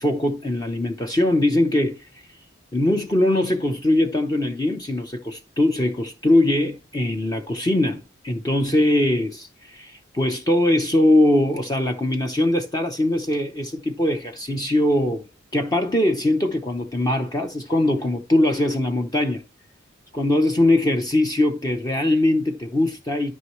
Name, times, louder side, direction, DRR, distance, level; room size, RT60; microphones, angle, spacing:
voice 1, 0.0-2.1 2.7-19.4 20.1-23.3, left 1 dB, 20° left, 0.7 m, -21 dB
13.0 x 5.4 x 3.1 m
head